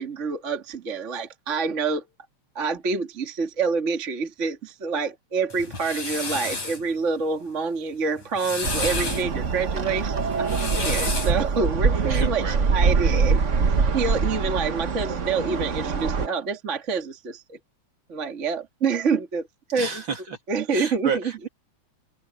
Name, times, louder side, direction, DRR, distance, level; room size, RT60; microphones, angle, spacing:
voice 1, 0.0-2.0 2.6-13.4 13.9-17.6 18.1-19.5 19.7-20.0 20.5-21.1, right 4 dB, 25° right, 2.0 m, -27 dB
sound 1, 5.5-6.8 8.2-9.2 10.3-11.4, left 3 dB, 70° left, 8.0 m, -30 dB
sound 2, 8.6-16.3, right 5 dB, 70° right, 0.7 m, -24 dB
voice 2, 12.1-12.7 19.8-20.4 20.7-21.5, right 5 dB, 45° right, 3.1 m, -31 dB
omnidirectional pair, 3.3 m